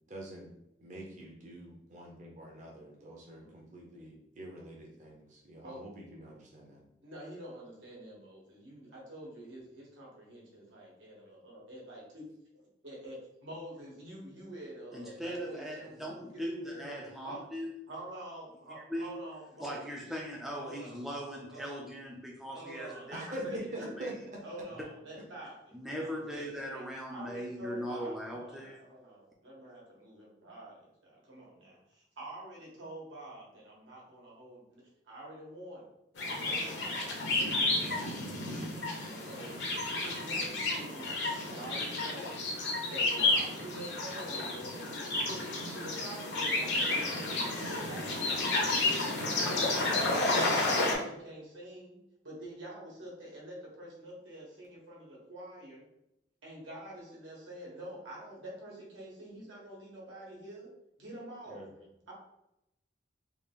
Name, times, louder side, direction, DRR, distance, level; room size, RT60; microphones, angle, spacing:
voice 1, 0.1-0.5 0.8-6.8 23.1-24.4 61.5-61.7, right 1 dB, 40° right, -2 dB, 0.6 m, -44 dB
voice 2, 7.0-12.3 12.8-13.2 13.4-17.0 17.2-17.4 17.9-20.0 20.6-21.0 21.5-21.7 22.5-23.9 24.4-35.9 36.2-38.6 39.2-41.1 41.4-42.4 42.8-48.8 49.2-52.0 52.2-55.9 56.4-60.7 61.0-62.1, right 1 dB, 85° right, -4 dB, 1.3 m, -47 dB
voice 3, 14.9-17.7 18.8-19.2 19.6-23.2 24.0-24.3 25.7-28.8, equal, ahead, -2 dB, 0.3 m, -39 dB
sound 1, 36.2-50.9, left 2 dB, 65° left, 0.7 m, -31 dB
3.3 x 2.4 x 3.4 m, 0.84 s
head